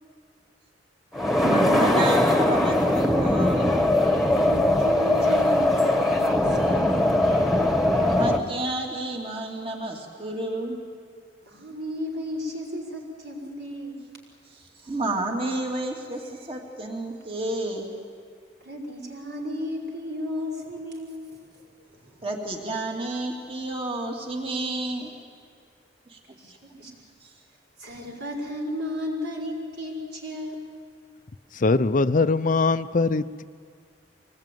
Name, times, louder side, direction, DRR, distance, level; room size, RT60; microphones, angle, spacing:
sound 1, 1.1-8.4, left 1 dB, ahead, 1.6 m, -21 dB
voice 1, 1.4-3.7 8.1-10.8 14.8-17.9 22.2-25.1 26.1-26.2 27.2-27.3, right 1 dB, 30° right, 1 dB, 2.7 m, -30 dB
voice 2, 4.4-7.3 11.4-13.9 18.6-21.2 21.5-22.2 26.3-26.9 27.8-30.5, left 1 dB, 70° right, 0 dB, 5.8 m, -34 dB
voice 3, 31.6-33.4, left 3 dB, 45° left, 13 dB, 0.6 m, -21 dB
25.0 x 19.5 x 9.3 m, 2.1 s
head